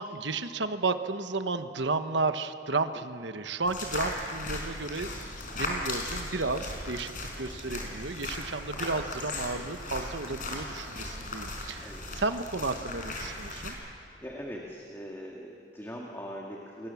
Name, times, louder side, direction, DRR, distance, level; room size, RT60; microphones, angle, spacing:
voice 1, 0.0-5.1 5.4-7.1 7.4-13.8, right 3 dB, 75° right, 9 dB, 1.1 m, -32 dB
sound 1, 3.7-13.7, left 2 dB, 45° left, 4.7 m, -37 dB
voice 2, 13.8-16.9, equal, 15° left, -1 dB, 2.1 m, -41 dB
29.5 x 22.0 x 7.1 m, 2.6 s
head